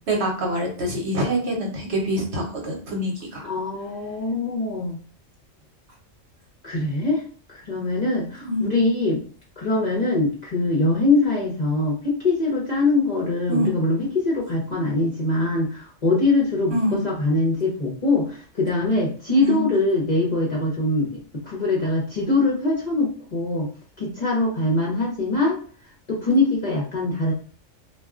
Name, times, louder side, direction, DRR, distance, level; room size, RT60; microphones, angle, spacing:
voice 1, 0.1-3.5 8.5-8.8 13.5-13.7 16.7-17.0 19.4-19.6, equal, 60° right, 0 dB, 1.0 m, -25 dB
voice 2, 3.4-5.0 6.6-7.2 7.5-9.2 9.6-23.7 24.0-25.6 26.1-27.3, left 2 dB, 40° left, -4 dB, 0.7 m, -23 dB
2.4 x 2.2 x 3.5 m, 0.42 s
omnidirectional pair, 1.3 m